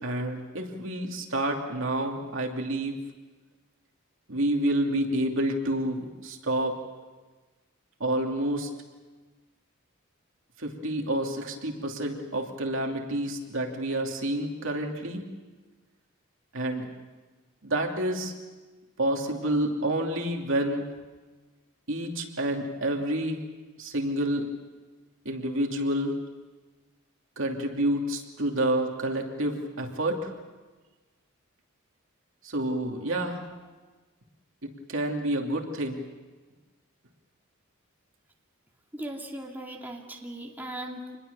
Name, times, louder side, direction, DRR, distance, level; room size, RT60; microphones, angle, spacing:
voice 1, 0.0-3.0 4.3-6.8 8.0-8.7 10.6-15.2 16.5-16.9 17.6-18.3 19.0-20.9 21.9-23.4 23.8-24.5 25.2-26.2 27.4-30.3 32.4-33.4 34.6-36.0, right 1 dB, 70° right, 2 dB, 2.8 m, -29 dB
voice 2, 38.9-41.2, right 1 dB, 10° right, -1 dB, 2.5 m, -38 dB
27.0 x 21.0 x 6.9 m, 1.3 s
head